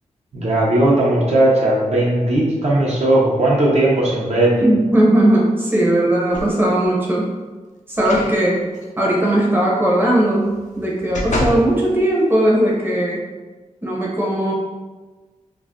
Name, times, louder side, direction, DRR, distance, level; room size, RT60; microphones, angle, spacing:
voice 1, 0.3-4.6, right 1 dB, 55° right, -5 dB, 0.7 m, -17 dB
voice 2, 4.6-7.3 7.9-8.6 9.0-13.2 13.8-14.5, right 1 dB, 15° right, -4 dB, 0.7 m, -18 dB
sound 1, 6.3-6.9 8.0-8.3 8.7-8.9 10.5-11.7 12.3-12.4, left 1 dB, 70° left, 0.5 m, -26 dB
2.4 x 2.1 x 3.6 m, 1.3 s
wide cardioid pair, 75°, 13 cm